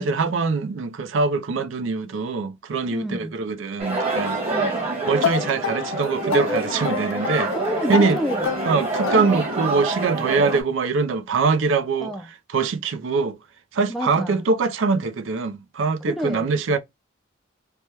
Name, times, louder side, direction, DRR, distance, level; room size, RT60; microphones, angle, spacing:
voice 1, 0.0-4.4 5.1-7.5 7.9-8.2 8.7-12.1 12.5-13.4 13.7-16.8, right 4 dB, 75° right, 0.4 m, -23 dB
voice 2, 2.9-3.3 4.5-4.9 7.5-8.5 12.0-12.3 13.9-14.5 16.1-16.5, equal, ahead, 0.3 m, -29 dB
sound 1, 3.8-10.6, right 2 dB, 30° right, 1.3 m, -26 dB
sound 2, 5.2-9.8, left 8 dB, 80° left, 0.3 m, -29 dB
3.3 x 2.2 x 2.8 m
head